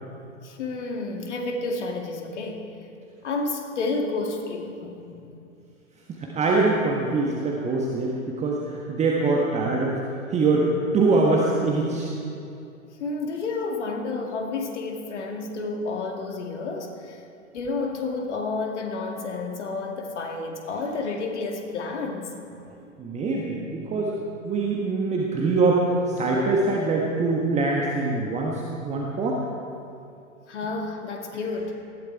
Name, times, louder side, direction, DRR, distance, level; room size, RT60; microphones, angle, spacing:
voice 1, 0.4-2.7 3.2-5.3 13.0-17.2 17.5-22.3 30.5-31.7, left 3 dB, 55° left, 3 dB, 2.2 m, -30 dB
voice 2, 6.1-10.0 10.3-12.1 23.0-24.2 24.4-25.8 26.2-29.4, right 3 dB, 15° right, -2 dB, 1.5 m, -23 dB
19.0 x 14.5 x 4.7 m, 2.7 s
figure-of-eight pair, 105°, 40 cm